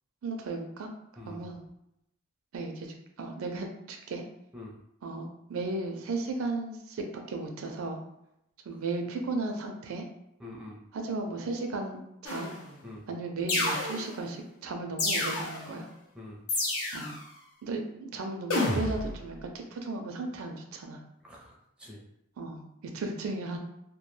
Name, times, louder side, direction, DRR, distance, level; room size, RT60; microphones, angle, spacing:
voice 1, 0.2-0.9 1.3-1.6 2.5-4.2 5.0-8.0 8.7-10.0 10.9-12.5 13.1-15.9 16.9-17.2 17.6-21.0 22.4-23.6, right 3 dB, 70° right, 3 dB, 0.4 m, -35 dB
voice 2, 1.2-1.5 4.5-4.8 10.4-10.8 12.8-13.0 16.1-16.4 21.2-22.0, left 1 dB, 5° right, -3 dB, 0.5 m, -45 dB
sound 1, 12.2-12.7 13.5-14.3 15.0-15.7 16.5-17.2 18.5-19.2, left 2 dB, 80° left, 0.7 m, -30 dB
2.2 x 2.2 x 3.1 m, 0.81 s
head